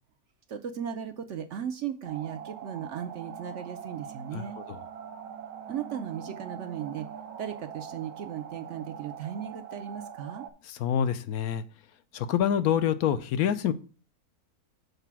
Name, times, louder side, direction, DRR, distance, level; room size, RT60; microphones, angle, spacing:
voice 1, 0.5-4.6 5.7-7.1 7.4-10.5, right 9 dB, 65° right, 0.8 m, -36 dB
sound 1, 2.0-10.5, right 8 dB, 90° right, 1.4 m, -43 dB
voice 2, 4.3-4.8 10.7-11.6 12.1-13.7, left 9 dB, 75° left, 1.1 m, -27 dB
6.8 x 4.1 x 5.9 m
omnidirectional pair, 1.6 m